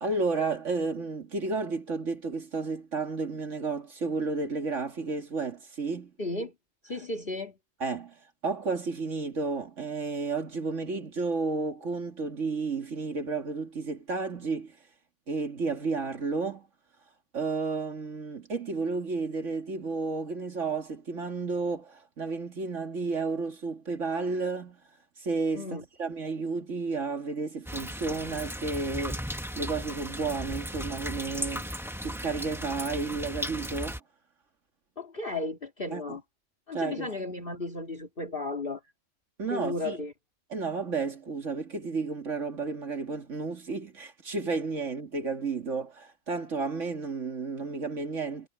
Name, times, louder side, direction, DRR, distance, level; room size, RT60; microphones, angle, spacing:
voice 1, 0.0-6.1 7.8-14.8 15.3-16.7 17.3-24.8 25.2-25.7 26.0-29.2 29.6-31.7 32.0-34.0 35.9-36.2 36.7-37.1 39.4-40.0 40.5-48.5, right 4 dB, 80° right, 2.5 m, -32 dB
voice 2, 6.2-6.5 6.8-7.6 25.5-25.8 35.0-36.2 36.7-38.8 39.5-40.1, left 2 dB, 45° left, 2.8 m, -34 dB
sound 1, 27.7-34.0, equal, ahead, 1.2 m, -36 dB
omnidirectional pair, 1.2 m